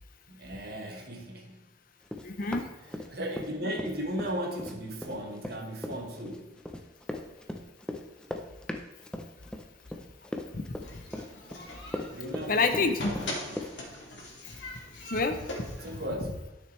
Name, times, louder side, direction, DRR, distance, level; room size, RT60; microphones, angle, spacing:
voice 1, 0.3-1.7 3.1-6.5 12.0-13.7 15.8-16.3, equal, 55° right, 1.4 m, -36 dB
Run, 2.1-3.5 3.8-13.7, left 1 dB, 5° left, 0.6 m, -38 dB
voice 2, 2.2-2.6 10.5-10.7 12.5-13.1 15.1-16.0, left 3 dB, 45° left, 0.6 m, -28 dB
sound 1, 10.8-16.0, left 1 dB, 75° left, 2.4 m, -41 dB
12.0 x 6.5 x 3.2 m
head